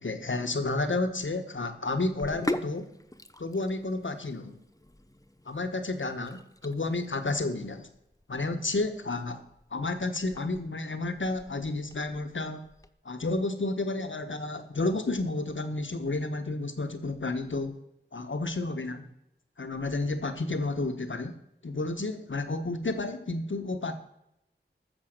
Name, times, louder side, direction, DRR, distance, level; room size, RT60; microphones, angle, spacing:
voice 1, 0.0-2.9 3.4-4.6 5.4-7.9 8.3-9.4 9.7-12.7 13.0-17.8 18.1-19.1 19.6-21.3 21.6-23.9, left 2 dB, 90° left, 8 dB, 1.1 m, -31 dB
Sink (filling or washing), 2.0-12.9, left 1 dB, 15° left, 0.8 m, -42 dB
14.0 x 7.0 x 6.5 m, 0.83 s
wide cardioid pair, 50°, 19 cm